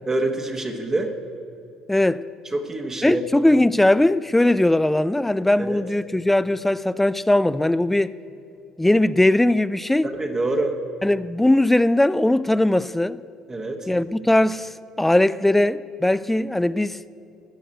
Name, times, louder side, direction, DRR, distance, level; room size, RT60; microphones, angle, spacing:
voice 1, 0.1-1.1 2.5-3.2 5.6-5.8 10.1-10.8 13.5-13.9, right 2 dB, 20° right, 1.2 m, -26 dB
voice 2, 1.9-2.2 3.0-8.2 8.8-10.1 11.0-13.2 13.9-17.0, left 1 dB, 10° left, 0.3 m, -19 dB
13.5 x 6.4 x 9.0 m
figure-of-eight pair, 55°, 2 cm